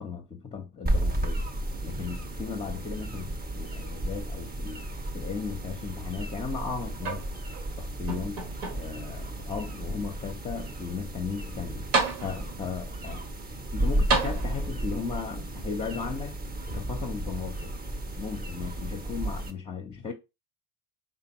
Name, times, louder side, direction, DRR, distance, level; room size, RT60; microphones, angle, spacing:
voice 1, 0.0-1.5 1.8-4.9 5.1-7.3 7.8-8.4 8.7-11.9 12.2-13.2 13.7-16.4 16.7-17.7 18.1-20.1, left 5 dB, 15° left, 0.5 m, -36 dB
sound 1, 0.9-19.5, right 1 dB, 20° right, 0.7 m, -33 dB
sound 2, 7.0-7.7 8.1-9.1 9.8-9.9 11.5-11.6 11.9-12.7 14.1-14.9 16.0-16.1, right 4 dB, 85° right, 1.3 m, -30 dB
3.8 x 3.3 x 2.9 m
supercardioid pair, 95°, 43 cm